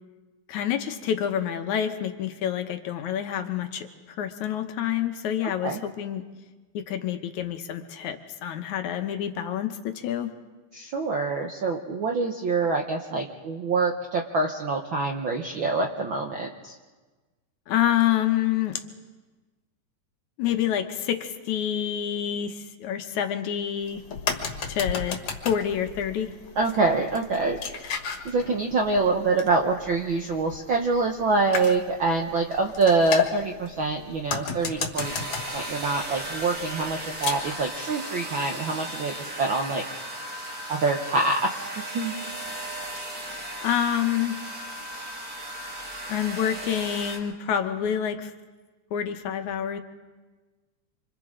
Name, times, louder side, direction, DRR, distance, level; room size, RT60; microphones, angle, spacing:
voice 1, 0.5-3.9 4.2-6.2 6.7-10.3 17.7-18.8 20.4-24.0 24.7-25.2 25.4-26.3 43.6-44.4 46.1-48.3 48.9-49.8, left 10 dB, 75° left, 7 dB, 2.3 m, -27 dB
voice 2, 10.7-16.7 26.6-27.6 28.0-35.3 35.5-39.8 40.7-41.7 41.9-42.2, right 3 dB, 65° right, 2 dB, 1.2 m, -25 dB
sound 1, 23.8-37.7, left 6 dB, 50° left, 2.3 m, -35 dB
sound 2, 35.0-47.2, right 1 dB, 30° right, 2.5 m, -36 dB
26.5 x 26.0 x 3.8 m, 1.3 s
omnidirectional pair, 3.6 m